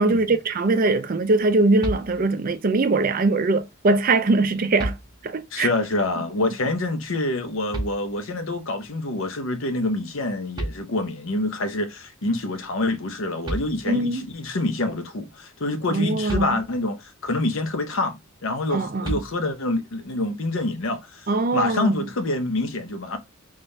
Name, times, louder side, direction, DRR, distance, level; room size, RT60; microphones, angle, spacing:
voice 1, 0.0-4.9 5.2-5.7 13.9-14.2 15.9-16.5 18.7-19.2 21.3-22.1, right 3 dB, 40° right, 0.4 m, -21 dB
sound 1, 1.8-2.6 4.1-4.2 4.8-5.5 7.7-8.5 10.2-10.3 10.6-11.4 13.1-13.2 13.4-14.2 16.3-17.1 19.0-19.8, right 1 dB, 20° right, 0.8 m, -33 dB
voice 2, 5.5-21.3 21.5-23.2, left 2 dB, 65° left, 0.7 m, -26 dB
3.6 x 3.3 x 2.6 m
head